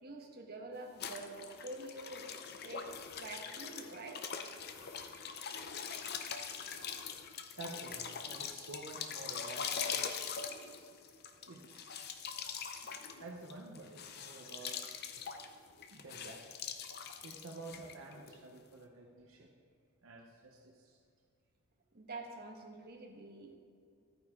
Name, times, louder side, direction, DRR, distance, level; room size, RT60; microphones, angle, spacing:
voice 1, 0.0-2.3 2.6-2.9 3.2-4.2 21.9-23.6, right 2 dB, 45° right, 0 dB, 1.4 m, -47 dB
sound 1, 1.0-18.4, left 7 dB, 50° left, 0.7 m, -43 dB
voice 2, 7.6-10.1 11.5-12.0 12.6-12.7 13.2-15.1 15.9-16.4 17.2-19.5 20.0-21.0, right 2 dB, 70° right, 0 dB, 0.9 m, -50 dB
13.0 x 9.2 x 3.7 m, 2.4 s
head